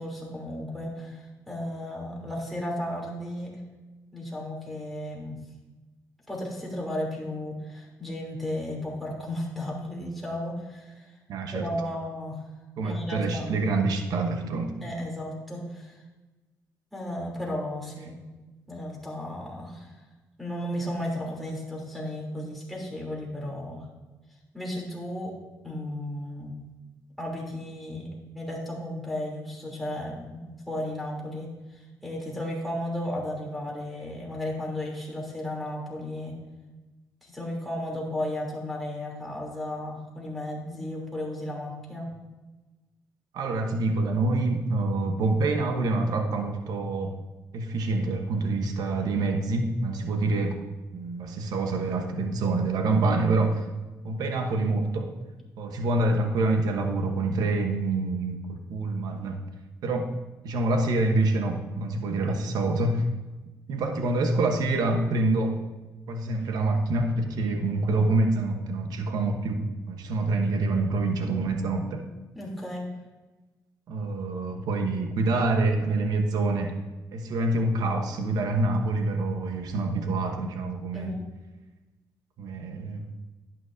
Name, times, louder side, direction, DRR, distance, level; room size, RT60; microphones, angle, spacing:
voice 1, 0.0-3.5 4.1-5.4 6.3-11.1 11.5-12.4 12.8-13.5 14.8-16.0 16.9-18.2 18.7-19.9 20.4-23.9 24.5-25.3 25.6-26.6 27.2-28.1 28.3-36.4 37.2-42.1 72.3-72.9 80.9-81.3, left 1 dB, ahead, -4 dB, 3.1 m, -34 dB
voice 2, 11.3-11.7 12.8-14.7 43.3-47.1 47.5-50.5 50.9-53.6 54.0-55.1 55.6-59.4 59.8-60.1 60.4-63.0 63.7-65.6 66.1-72.0 73.9-76.7 77.1-81.1 82.4-83.0, right 2 dB, 75° right, 5 dB, 1.1 m, -26 dB
11.0 x 9.2 x 2.7 m, 1.2 s
cardioid pair, 100°, 7 cm